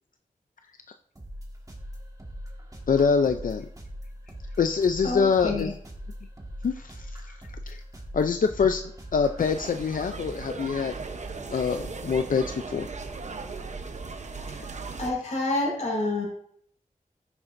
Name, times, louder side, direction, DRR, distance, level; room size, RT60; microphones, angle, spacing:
sound 1, 1.2-9.5, equal, 25° right, 1.8 m, -41 dB
voice 1, 2.9-3.7 4.6-5.7 6.6-7.1 7.7-7.8 8.1-8.8 9.1-10.9 11.5-12.9, left 5 dB, 70° left, 7 dB, 0.5 m, -25 dB
voice 2, 5.0-5.7 14.5-14.6 15.0-16.2, left 2 dB, 55° left, -2 dB, 5.1 m, -28 dB
sound 2, 9.4-15.1, right 4 dB, 55° right, 0.9 m, -37 dB
13.0 x 9.8 x 2.6 m, 0.65 s
wide cardioid pair, 100°, 14 cm